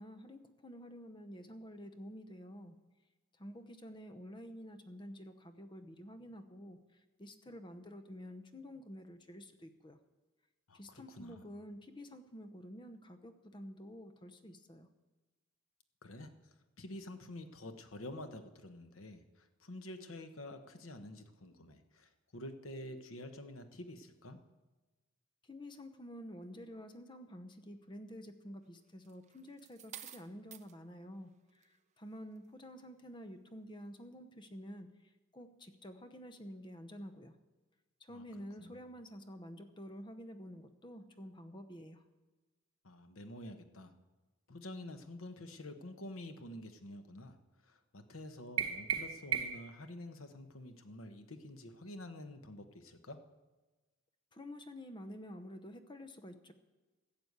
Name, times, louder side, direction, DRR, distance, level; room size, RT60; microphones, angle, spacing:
voice 1, 0.0-2.8 3.4-10.0 10.7-14.9 25.5-35.0 35.3-37.3 38.0-42.0 54.3-56.5, equal, 20° left, 8 dB, 0.7 m, -50 dB
voice 2, 10.7-11.4 16.0-16.3 16.8-24.4 38.1-38.2 38.6-38.8 42.8-43.9 44.5-47.4 47.6-53.2, left 1 dB, 75° left, 7 dB, 1.1 m, -48 dB
sound 1, 29.0-30.7 31.5-31.8, right 10 dB, 35° right, 0.5 m, -51 dB
sound 2, 48.6-49.8, right 7 dB, 85° right, 1.0 m, -35 dB
14.5 x 6.9 x 8.0 m, 1.2 s
head